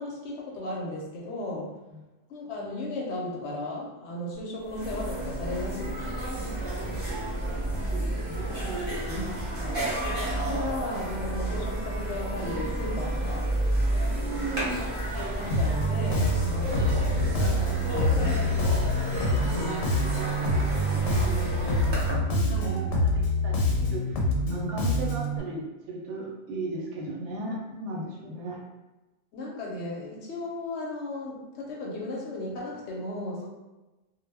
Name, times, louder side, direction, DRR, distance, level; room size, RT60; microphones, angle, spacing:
voice 1, 0.0-1.7 2.3-6.3 9.1-9.2 10.3-13.6 15.2-18.7 19.4-19.7 22.5-22.9 29.3-33.5, left 2 dB, 65° left, -2 dB, 0.8 m, -36 dB
sound 1, 4.4-4.5 4.6-22.1, right 1 dB, 25° right, 0.7 m, -31 dB
voice 2, 7.1-9.2 9.6-9.8 14.1-14.9 19.1-28.6, right 2 dB, 70° right, -2 dB, 0.9 m, -37 dB
Bass guitar, 15.5-25.4, left 1 dB, 90° left, 1.0 m, -26 dB
2.2 x 2.1 x 3.2 m, 1.1 s
omnidirectional pair, 1.3 m